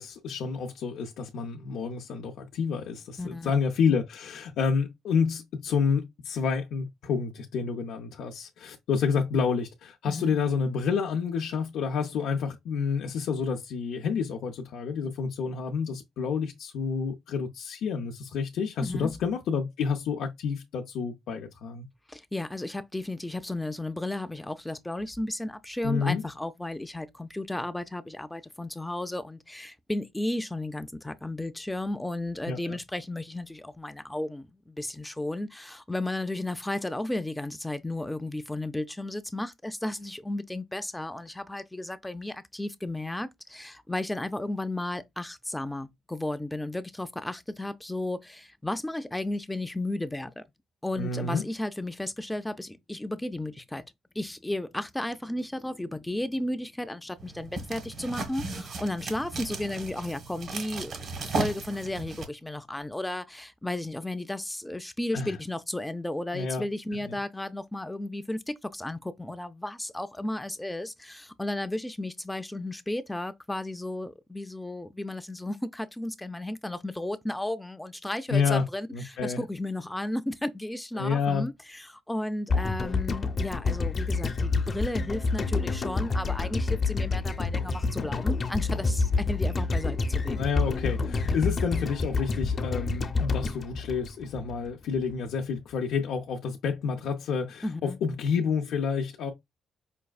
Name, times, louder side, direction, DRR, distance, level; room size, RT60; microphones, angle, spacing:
voice 1, 0.0-21.9 25.8-26.2 32.5-32.8 51.0-51.4 65.1-65.3 66.3-66.6 67.1-67.2 78.3-78.6 78.9-79.4 80.9-81.5 90.4-99.3, left 5 dB, 80° left, 0.6 m, -29 dB
voice 2, 3.2-3.5 10.0-10.3 18.8-19.1 22.1-50.4 50.8-53.8 54.2-90.5 97.6-98.0, left 1 dB, 10° left, 0.4 m, -34 dB
sound 1, 57.2-62.3, right 3 dB, 65° right, 1.3 m, -35 dB
sound 2, 82.5-94.7 95.0-95.1, left 4 dB, 45° left, 0.7 m, -28 dB
5.3 x 2.4 x 2.3 m
cardioid pair, 90°, 0 cm